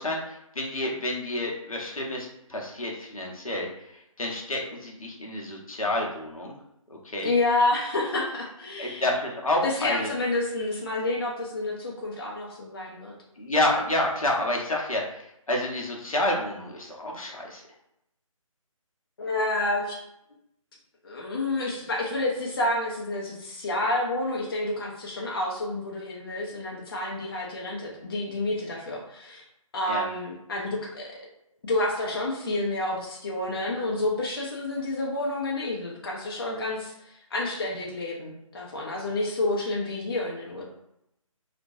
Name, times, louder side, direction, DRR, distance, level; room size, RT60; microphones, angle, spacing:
voice 1, 0.0-6.5 6.9-7.3 8.8-10.1 13.4-17.6 29.9-30.1, left 1 dB, 75° left, -1 dB, 0.7 m, -29 dB
voice 2, 7.2-9.0 9.6-13.1 19.2-20.0 21.0-29.4 29.7-31.2 31.6-40.6, left 2 dB, 40° left, -3 dB, 0.5 m, -29 dB
2.3 x 2.2 x 2.6 m, 0.82 s
figure-of-eight pair, 150°, 18 cm